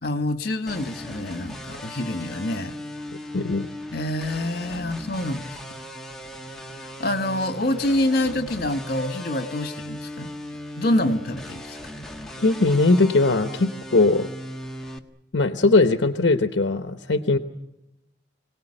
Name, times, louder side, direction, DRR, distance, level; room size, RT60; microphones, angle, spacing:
voice 1, 0.0-2.7 3.9-5.6 7.0-10.3 10.7-11.8, left 1 dB, 55° left, 9 dB, 1.7 m, -26 dB
sound 1, 0.7-15.0, left 1 dB, ahead, 1.4 m, -38 dB
voice 2, 3.3-3.7 12.4-14.3 15.3-17.4, left 3 dB, 75° left, 9 dB, 1.0 m, -20 dB
25.0 x 18.0 x 10.0 m, 0.90 s
head